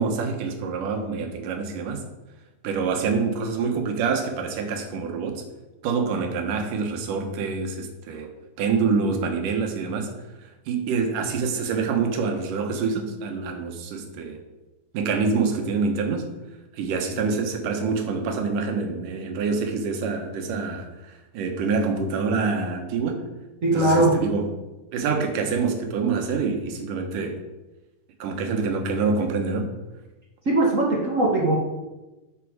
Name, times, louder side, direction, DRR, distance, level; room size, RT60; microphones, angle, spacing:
voice 1, 0.0-2.0 2.6-5.4 5.8-8.3 8.6-10.1 10.7-14.4 14.9-16.3 16.8-23.3 23.7-24.5 24.9-27.4 28.2-29.7, right 4 dB, 70° right, 4 dB, 2.7 m, -26 dB
voice 2, 23.6-24.1 30.4-31.6, right 2 dB, 40° right, -3 dB, 1.1 m, -20 dB
10.5 x 7.5 x 4.8 m, 1.1 s
omnidirectional pair, 4.0 m